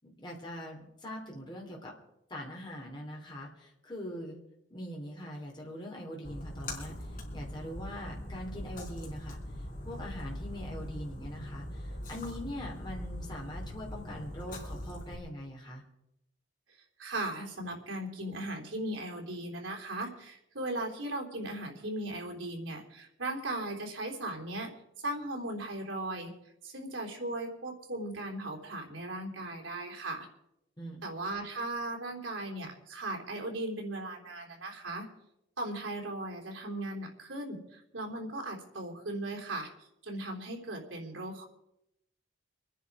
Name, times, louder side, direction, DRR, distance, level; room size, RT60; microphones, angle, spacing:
voice 1, 0.0-1.9 2.3-4.4 4.7-6.9 7.3-9.4 9.8-15.8 30.8-31.0, equal, 20° left, -1 dB, 3.1 m, -42 dB
Splash splatter, 6.2-15.1, left 1 dB, 45° left, 4.1 m, -41 dB
voice 2, 17.0-24.7 25.0-26.3 26.6-30.3 31.0-35.1 35.6-39.7 40.0-41.5, right 1 dB, 80° right, 1 dB, 3.7 m, -37 dB
25.5 x 10.0 x 4.9 m, 0.83 s
head